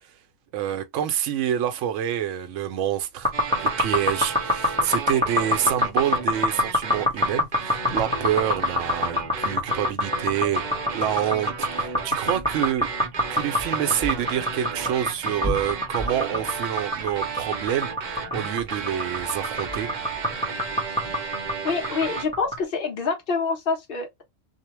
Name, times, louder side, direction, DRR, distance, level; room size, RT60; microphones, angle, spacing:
voice 1, 0.5-3.3 3.6-10.6 10.9-12.9 13.3-17.9 18.3-19.9, right 10 dB, 75° right, 0.9 m, -27 dB
sound 1, 3.2-22.6, left 1 dB, 5° left, 0.7 m, -25 dB
sound 2, 3.3-22.3, right 5 dB, 45° right, 0.6 m, -33 dB
voice 2, 21.6-24.2, left 4 dB, 50° left, 1.0 m, -26 dB
2.7 x 2.0 x 2.9 m
omnidirectional pair, 1.3 m